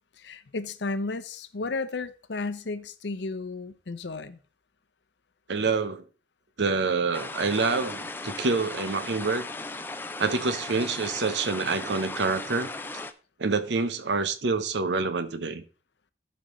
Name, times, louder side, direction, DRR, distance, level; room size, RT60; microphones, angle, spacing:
voice 1, 0.2-4.4, left 3 dB, 85° left, 0.7 m, -33 dB
voice 2, 5.5-6.0 6.6-9.5 10.2-12.7 13.4-15.6, right 4 dB, 80° right, 0.8 m, -27 dB
sound 1, 7.1-13.1, left 2 dB, 10° left, 0.4 m, -37 dB
14.5 x 5.2 x 3.1 m
head